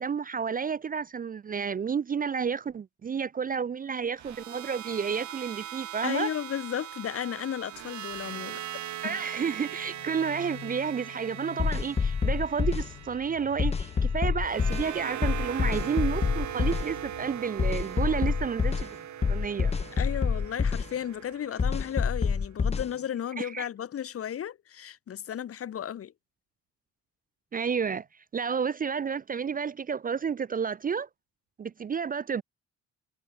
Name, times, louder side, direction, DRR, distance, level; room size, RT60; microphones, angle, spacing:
voice 1, 0.0-6.3 9.0-18.9 19.3-19.7 23.4-23.7 27.5-28.1 28.3-31.1 31.6-32.4, right 6 dB, 30° right, 0.4 m, -31 dB
sound 1, 4.2-22.3, right 11 dB, 70° right, 2.9 m, -40 dB
voice 2, 6.0-8.6 9.0-9.2 20.0-26.1, left 9 dB, 50° left, 0.9 m, -34 dB
sound 2, 9.6-21.5, left 13 dB, 75° left, 1.8 m, -49 dB
sound 3, 11.6-12.9 13.6-14.9 15.2-16.9 17.6-18.9 19.2-20.9 21.6-22.9, left 5 dB, 20° left, 0.6 m, -27 dB
cardioid pair, 90°, 30 cm